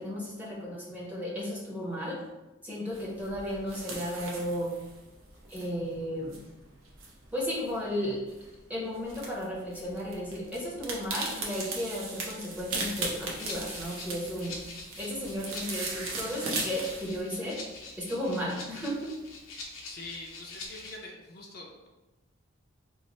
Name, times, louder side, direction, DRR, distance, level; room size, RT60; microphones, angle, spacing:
voice 1, 0.0-2.2 2.6-4.7 5.5-6.4 7.3-8.2 8.7-14.5 15.0-17.6 18.0-19.1, equal, 10° right, -6 dB, 0.7 m, -34 dB
sound 1, 2.9-17.2, right 3 dB, 80° right, 0.7 m, -39 dB
Rattle (instrument), 12.9-21.0, left 3 dB, 90° left, 0.7 m, -45 dB
voice 2, 19.9-21.9, left 2 dB, 50° left, -1 dB, 0.4 m, -44 dB
3.1 x 2.0 x 4.0 m, 1.1 s
head